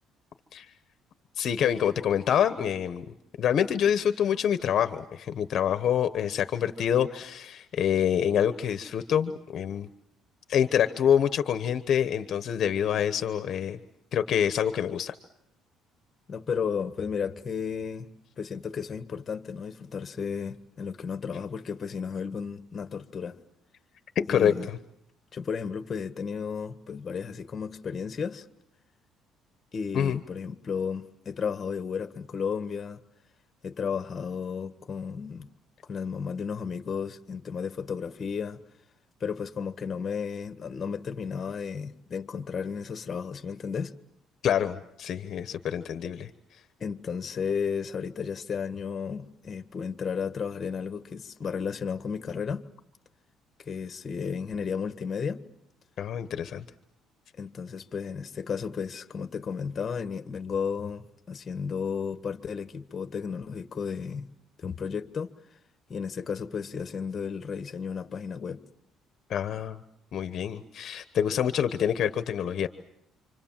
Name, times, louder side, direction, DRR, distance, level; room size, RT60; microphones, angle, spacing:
voice 1, 1.4-3.0 3.4-9.9 10.5-13.8 14.1-15.1 24.1-24.5 29.9-30.2 44.4-46.3 56.0-56.6 69.3-69.8 70.1-72.7, left 9 dB, 50° left, 1.1 m, -26 dB
voice 2, 16.3-18.1 18.4-23.4 24.3-24.7 25.3-28.4 29.7-33.0 33.6-35.5 35.9-38.6 39.2-43.9 46.8-52.6 53.6-55.4 57.4-64.3 64.6-65.3 65.9-68.6, left 6 dB, 30° left, 1.5 m, -33 dB
28.0 x 26.0 x 7.5 m
cardioid pair, 140°, 0 cm